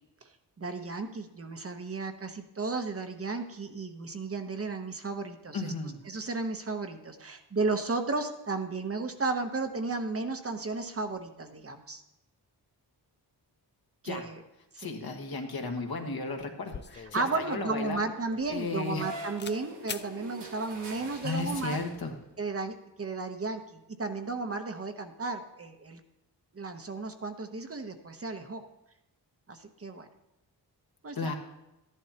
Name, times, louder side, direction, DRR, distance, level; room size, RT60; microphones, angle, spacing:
voice 1, 0.6-5.7 6.1-12.0 14.0-14.4 14.7-14.9 17.1-21.8 22.4-26.0 26.5-28.6 29.5-30.1 31.0-31.3, right 3 dB, 35° right, 6 dB, 0.9 m, -34 dB
voice 2, 5.5-6.0 14.0-14.2 14.8-18.0 18.5-19.1 21.1-22.1 31.2-31.3, left 3 dB, 60° left, 3 dB, 1.5 m, -34 dB
sound 1, 16.7-19.1 19.4-19.6 19.9-20.1, left 6 dB, 30° left, 0.4 m, -43 dB
sound 2, 18.4-22.4, right 2 dB, 80° right, 2.1 m, -44 dB
13.0 x 11.0 x 2.9 m, 0.93 s
wide cardioid pair, 100°, 41 cm